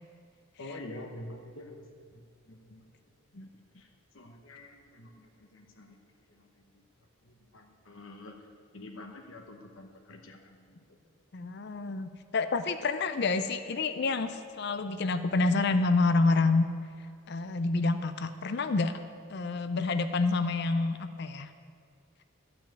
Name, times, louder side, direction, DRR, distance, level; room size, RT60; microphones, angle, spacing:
voice 1, 0.6-1.9 2.1-2.9 3.3-3.9 4.1-6.5 7.2-8.5 8.7-10.8, left 1 dB, 70° left, 2 dB, 1.1 m, -47 dB
voice 2, 11.3-16.7 17.3-19.0 19.3-21.5, left 3 dB, 55° left, 10 dB, 0.5 m, -28 dB
12.5 x 5.9 x 8.9 m, 2.2 s
head